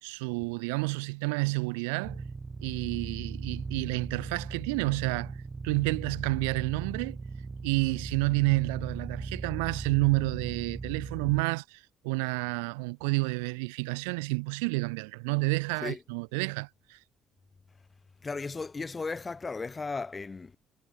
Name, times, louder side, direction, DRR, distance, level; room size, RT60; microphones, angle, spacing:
voice 1, 0.0-2.2 2.6-5.4 5.6-7.2 7.6-17.0, right 30 dB, 80° right, 0.7 m, -30 dB
sound 1, 2.0-11.4, right 4 dB, 30° right, 1.0 m, -38 dB
voice 2, 18.2-20.6, left 4 dB, 30° left, 1.6 m, -35 dB
hypercardioid pair, 50°, 0 cm